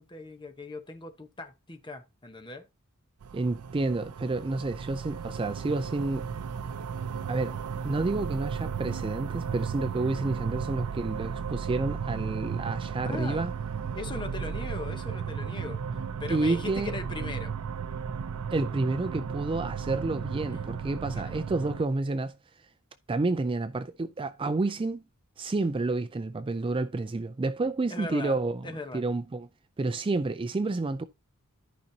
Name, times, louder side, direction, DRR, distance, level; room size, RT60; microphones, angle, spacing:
voice 1, 0.0-2.7 13.0-13.4 13.9-17.5 20.5-20.7 21.1-21.2 27.9-28.4 28.6-29.0, left 3 dB, 20° left, 1.0 m, -39 dB
sound 1, 3.2-21.8, right 6 dB, 90° right, 0.5 m, -35 dB
voice 2, 3.3-6.3 7.3-7.6 7.8-13.5 16.3-16.9 18.5-22.4 23.1-25.0 25.4-28.7 28.9-29.5 29.8-31.0, right 3 dB, 25° right, 0.4 m, -29 dB
13.5 x 5.2 x 2.8 m
head